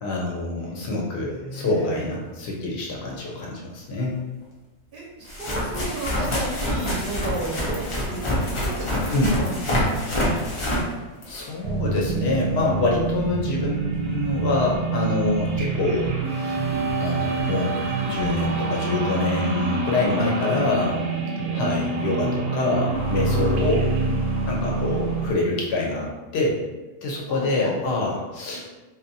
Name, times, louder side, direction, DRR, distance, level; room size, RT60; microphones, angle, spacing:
voice 1, 0.0-4.2 9.1-9.4 11.3-16.1 16.4-16.6 17.0-21.0 21.5-23.9 24.5-26.6 27.0-28.6, left 2 dB, 65° left, -2 dB, 0.8 m, -25 dB
voice 2, 0.7-2.1 4.9-8.2 8.6-9.6 15.6-15.7 20.5-20.6 22.0-22.1 27.3-27.8, right 2 dB, 55° right, -5 dB, 0.7 m, -33 dB
sound 1, 3.1-3.2 4.4-4.5 5.2-11.6 16.7-16.8 17.8-17.9 18.1-18.3 20.2-20.3, equal, 40° left, 0.4 m, -26 dB
sound 2, 11.6-25.3, right 3 dB, 85° right, 0.9 m, -26 dB
2.7 x 2.2 x 2.6 m, 1.2 s
omnidirectional pair, 1.3 m